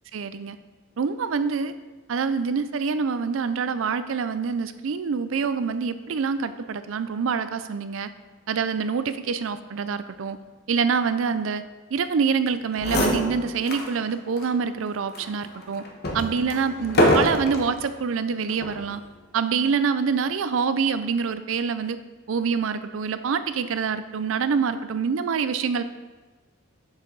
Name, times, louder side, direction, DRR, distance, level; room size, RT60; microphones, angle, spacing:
voice 1, 0.1-0.6 1.0-1.7 2.1-8.1 8.5-10.4 10.7-11.6 11.9-15.8 16.1-19.0 19.3-22.0 22.3-25.8, right 5 dB, 70° right, 12 dB, 0.4 m, -26 dB
sound 1, 12.5-12.6 12.8-13.9 14.4-14.5 15.1-17.7 18.5-18.8, equal, 50° left, 1.1 m, -24 dB
7.4 x 6.6 x 3.9 m, 1.3 s
head